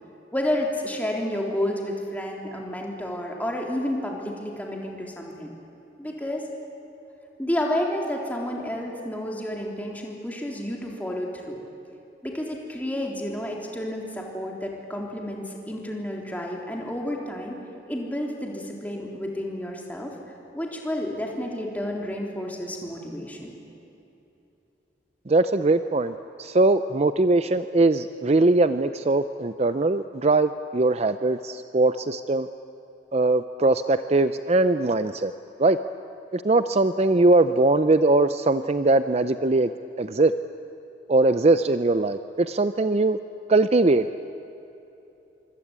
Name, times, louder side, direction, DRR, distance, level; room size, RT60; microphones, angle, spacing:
voice 1, 0.3-5.5 6.0-6.5 7.4-11.6 12.2-17.6 17.9-20.1 20.5-23.5, left 1 dB, 10° left, -1 dB, 3.5 m, -30 dB
voice 2, 25.3-32.5 33.1-35.3 35.6-35.8 36.3-39.7 40.0-40.3 41.1-43.2 43.5-44.1, right 2 dB, 35° right, 11 dB, 0.6 m, -21 dB
26.0 x 24.5 x 8.8 m, 2.9 s
head